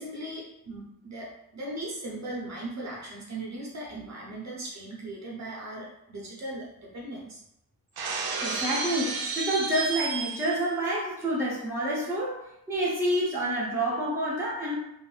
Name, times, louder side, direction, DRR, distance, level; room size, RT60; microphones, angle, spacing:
voice 1, 0.0-7.4, right 1 dB, 45° right, -4 dB, 0.8 m, -38 dB
Shatter, 8.0-10.7, right 4 dB, 85° right, 0.5 m, -32 dB
voice 2, 8.4-12.4 12.7-14.8, right 1 dB, 5° right, -7 dB, 0.6 m, -28 dB
2.6 x 2.0 x 3.2 m, 0.82 s
wide cardioid pair, 155°, 37 cm